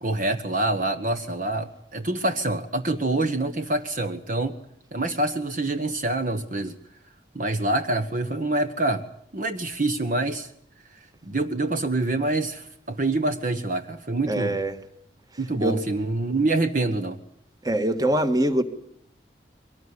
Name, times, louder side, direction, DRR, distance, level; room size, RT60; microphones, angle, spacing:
voice 1, 0.0-4.6 4.9-6.7 7.3-9.0 9.3-10.5 11.2-14.6 15.4-17.2, right 2 dB, 45° right, 8 dB, 1.2 m, -26 dB
voice 2, 14.3-14.7 15.6-15.8 17.6-18.6, right 1 dB, 20° right, 9 dB, 1.6 m, -23 dB
23.0 x 18.5 x 9.7 m, 0.68 s
head